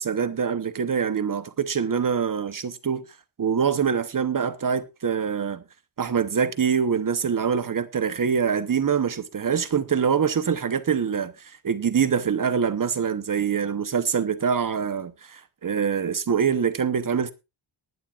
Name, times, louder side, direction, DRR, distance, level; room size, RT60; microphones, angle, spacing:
voice 1, 0.0-3.0 3.4-5.6 6.0-17.3, right 7 dB, 45° right, 0.9 m, -24 dB
19.5 x 11.0 x 2.4 m
wide cardioid pair, 160°, 45 cm